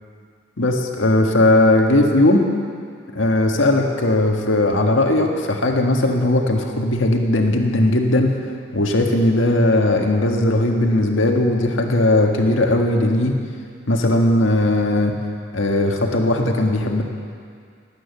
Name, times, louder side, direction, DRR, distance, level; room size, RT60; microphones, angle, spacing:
voice 1, 0.6-2.5 3.1-8.3 8.7-13.4 13.9-15.2 15.5-17.0, left 1 dB, 80° left, 2 dB, 1.7 m, -18 dB
18.5 x 9.0 x 7.2 m, 2.2 s
head